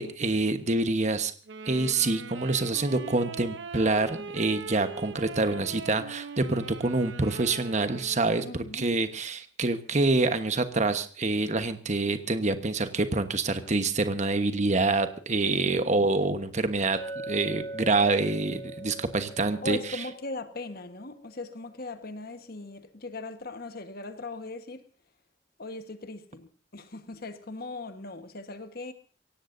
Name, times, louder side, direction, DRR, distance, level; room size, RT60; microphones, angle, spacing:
voice 1, 0.0-1.3 1.7-17.0 17.3-19.8, right 3 dB, 40° right, 1.2 m, -26 dB
Wind instrument woodwind instrument, 1.5-8.6, right 4 dB, 70° right, 0.9 m, -41 dB
voice 2, 8.4-8.9 15.4-15.9 19.6-24.8 25.6-28.9, left 2 dB, 50° left, 1.4 m, -39 dB
Chink clink, 16.9-21.1, right 2 dB, 30° left, 7.9 m, -41 dB
23.5 x 17.5 x 2.7 m
head